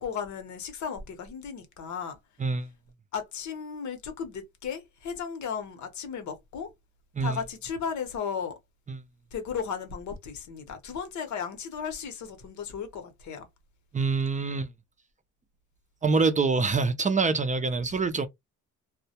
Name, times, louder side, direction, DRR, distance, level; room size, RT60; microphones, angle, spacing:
voice 1, 0.0-2.2 3.1-6.7 7.2-8.5 9.3-13.5, left 6 dB, 70° left, 0.9 m, -35 dB
voice 2, 13.9-14.7 16.0-18.3, right 4 dB, 25° right, 0.4 m, -25 dB
2.2 x 2.1 x 2.8 m
cardioid pair, 90°, 30 cm